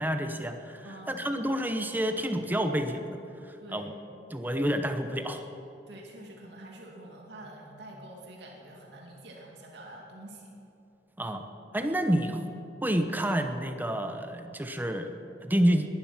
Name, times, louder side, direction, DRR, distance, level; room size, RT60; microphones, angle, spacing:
voice 1, 0.0-3.2 3.4-3.9 4.3-5.5 11.2-11.4 11.7-12.4 12.8-15.9, equal, 10° right, 6 dB, 0.8 m, -29 dB
voice 2, 0.8-1.4 3.6-3.9 5.9-10.5, right 1 dB, 70° right, -1 dB, 2.5 m, -46 dB
21.0 x 11.5 x 5.9 m, 2.8 s
head